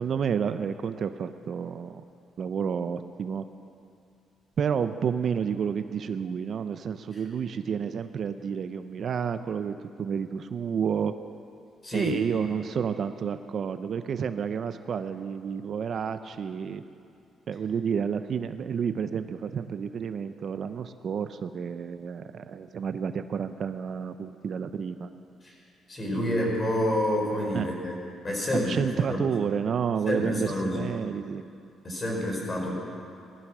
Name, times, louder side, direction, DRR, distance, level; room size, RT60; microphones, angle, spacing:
voice 1, 0.0-2.0 2.4-3.4 4.6-11.1 11.9-16.8 17.5-25.1 26.1-26.3 27.5-27.7 28.7-31.4, right 7 dB, 55° right, 10 dB, 0.6 m, -30 dB
voice 2, 11.8-12.2 25.4-25.5 25.9-27.9 28.2-28.7 29.1-29.3 30.1-30.9 31.8-32.8, left 1 dB, 30° left, -1 dB, 5.1 m, -28 dB
18.5 x 12.5 x 6.2 m, 2.5 s
cardioid pair, 90°, 0 cm